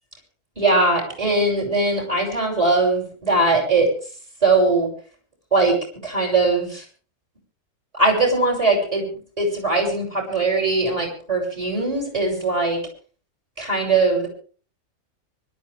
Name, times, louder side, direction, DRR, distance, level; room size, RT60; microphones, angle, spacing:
voice 1, 0.6-3.9 4.4-4.9 5.5-5.8 6.0-6.8 7.9-9.0 9.4-12.8 13.6-14.3, right 3 dB, 25° right, 1 dB, 6.6 m, -20 dB
24.5 x 12.5 x 3.5 m, 0.40 s
omnidirectional pair, 1.6 m